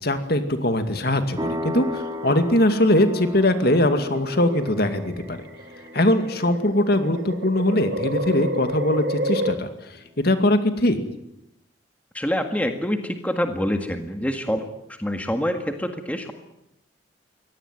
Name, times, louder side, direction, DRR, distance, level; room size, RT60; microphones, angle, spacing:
voice 1, 0.0-5.4 5.9-9.7 10.2-11.0, left 1 dB, 50° left, 8 dB, 2.3 m, -21 dB
sound 1, 0.9-1.8 3.0-3.4 4.3-9.5, equal, 55° right, 2.1 m, -30 dB
sound 2, 1.4-9.7, left 2 dB, 20° right, 2.3 m, -36 dB
voice 2, 12.1-14.7 15.0-16.3, equal, 5° left, 6 dB, 1.8 m, -26 dB
24.0 x 18.0 x 9.3 m, 0.83 s
head